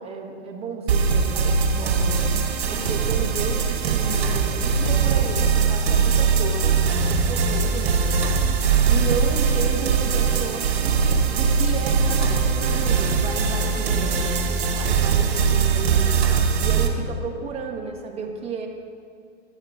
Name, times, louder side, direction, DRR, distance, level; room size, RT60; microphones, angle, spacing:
voice 1, 0.0-8.0 8.9-18.7, right 5 dB, 15° right, 1 dB, 1.2 m, -33 dB
sound 1, 0.9-16.9, right 5 dB, 65° right, 2.2 m, -21 dB
11.0 x 8.9 x 4.9 m, 2.2 s
hypercardioid pair, 130°, 35 cm